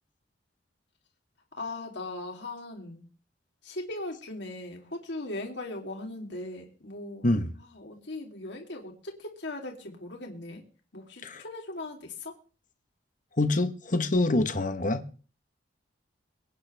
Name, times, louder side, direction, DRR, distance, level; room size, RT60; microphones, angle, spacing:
voice 1, 1.5-3.1 3.6-10.6 10.9-12.4, left 2 dB, 65° left, 3.0 m, -39 dB
voice 2, 13.4-15.0, left 2 dB, 45° left, 1.2 m, -25 dB
23.5 x 9.6 x 3.5 m
head